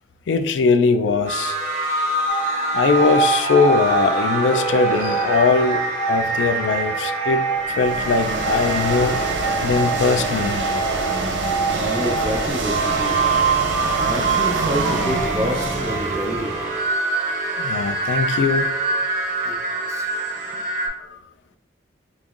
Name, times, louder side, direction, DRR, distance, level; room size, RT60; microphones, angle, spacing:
voice 1, 0.3-1.6 2.7-9.2 9.6-10.6 17.6-18.7 20.4-20.5 21.0-21.2, left 4 dB, 75° left, 0.3 m, -20 dB
sound 1, 1.3-20.9, right 3 dB, 40° right, 1.0 m, -25 dB
sound 2, 2.3-12.5, right 5 dB, 10° left, 1.0 m, -27 dB
sound 3, 7.6-16.8, right 2 dB, 80° right, 0.6 m, -26 dB
voice 2, 11.7-13.2 14.0-16.5 19.4-19.6 19.9-20.2, equal, 15° right, 0.4 m, -28 dB
5.1 x 2.9 x 2.4 m
head